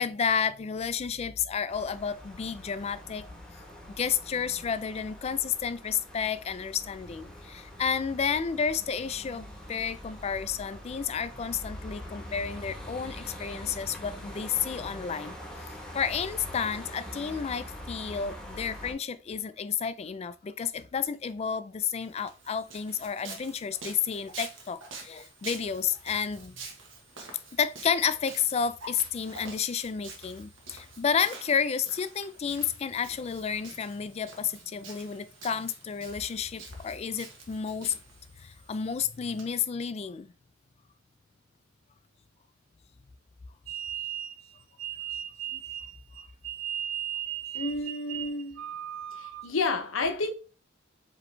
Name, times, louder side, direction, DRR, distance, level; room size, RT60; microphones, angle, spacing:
voice 1, 0.0-3.3 4.0-15.4 15.6-26.6 27.6-37.9 38.4-40.3 45.5-45.6, left 7 dB, 30° left, 0.3 m, -31 dB
sound 1, 1.7-18.9, left 1 dB, 5° left, 1.0 m, -44 dB
Walk footsteps, 22.0-39.4, right 3 dB, 70° right, 1.2 m, -47 dB
sound 2, 43.7-49.6, right 11 dB, 90° right, 0.5 m, -36 dB
voice 2, 47.5-48.7 49.1-50.3, left 3 dB, 85° left, 0.8 m, -30 dB
5.0 x 3.0 x 3.3 m
head